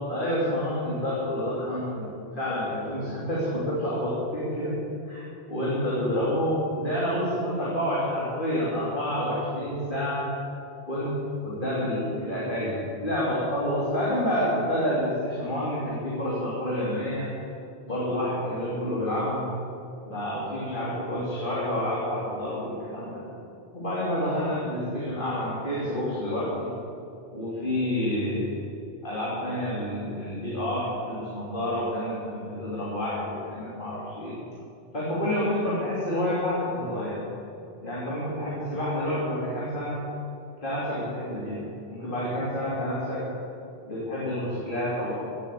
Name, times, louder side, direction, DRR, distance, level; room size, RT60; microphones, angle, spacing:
voice 1, 0.1-4.7 5.1-5.2 5.5-10.3 10.9-11.1 11.4-17.3 17.9-19.5 20.0-23.2 23.7-26.7 27.3-28.5 29.0-34.4 34.9-37.2 37.8-40.0 40.6-43.3 43.8-45.2, left 1 dB, 45° left, -7 dB, 3.3 m, -28 dB
17.0 x 8.2 x 8.4 m, 2.7 s
omnidirectional pair, 1.2 m